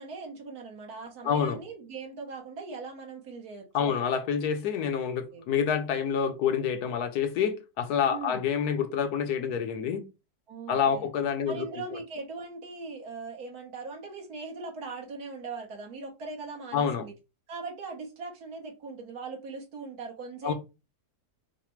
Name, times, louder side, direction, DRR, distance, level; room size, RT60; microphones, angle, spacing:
voice 1, 0.0-4.0 5.3-5.4 8.1-8.5 10.5-11.1 11.5-17.1 17.5-20.5, right 4 dB, 65° right, 1.6 m, -40 dB
voice 2, 1.2-1.6 3.7-10.0 10.7-11.6 16.7-17.0 20.4-20.5, left 7 dB, 70° left, 1.2 m, -27 dB
4.0 x 2.2 x 4.4 m
omnidirectional pair, 1.8 m